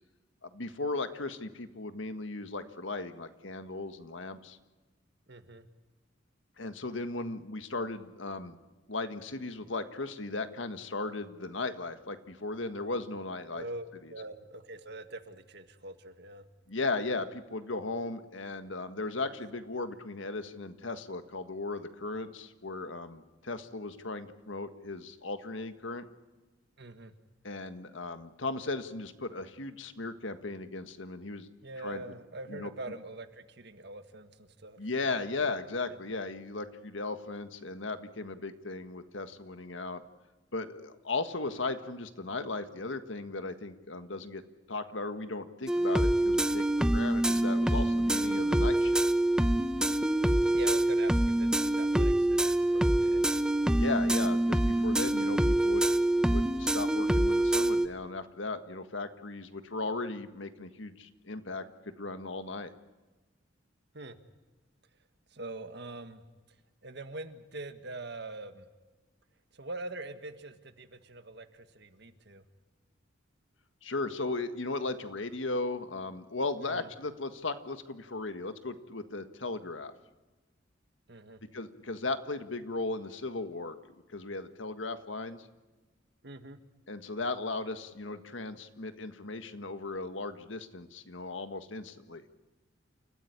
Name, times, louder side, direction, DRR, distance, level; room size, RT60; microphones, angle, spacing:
voice 1, 0.4-4.6 6.6-8.6 8.9-13.6 14.0-14.1 16.7-26.1 27.4-31.5 31.8-32.0 32.5-32.7 34.8-40.0 40.5-44.4 44.7-46.6 46.9-49.0 53.8-62.7 73.8-79.9 81.5-83.8 84.1-85.5 86.9-92.2, left 3 dB, 85° left, 9 dB, 1.6 m, -36 dB
voice 2, 5.3-5.7 13.5-16.4 26.8-27.1 31.6-34.8 48.0-48.2 50.5-53.2 54.0-54.3 63.9-64.2 65.3-66.2 66.8-68.6 69.5-72.4 76.6-76.9 81.1-81.4 86.2-86.6, right 2 dB, 60° right, 9 dB, 1.7 m, -43 dB
sound 1, 45.7-57.9, right 1 dB, 5° right, 0.8 m, -26 dB
29.0 x 15.0 x 9.8 m, 1.2 s
head